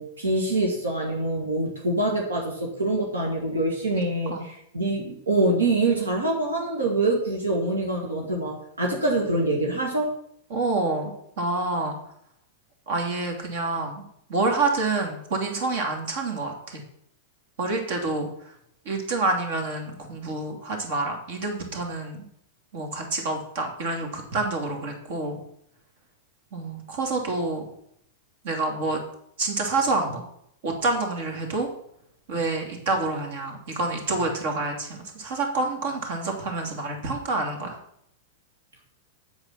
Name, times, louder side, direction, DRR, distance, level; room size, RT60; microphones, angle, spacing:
voice 1, 0.0-10.1, right 2 dB, 90° right, -1 dB, 2.2 m, -25 dB
voice 2, 10.5-12.0 12.9-16.8 17.6-18.5 18.8-22.3 22.7-25.4 26.5-27.6 28.4-29.0 29.4-30.2 30.6-31.7 32.3-37.8, right 3 dB, 65° right, 2 dB, 2.8 m, -28 dB
8.2 x 8.0 x 5.8 m, 0.72 s
hypercardioid pair, 105°, 0 cm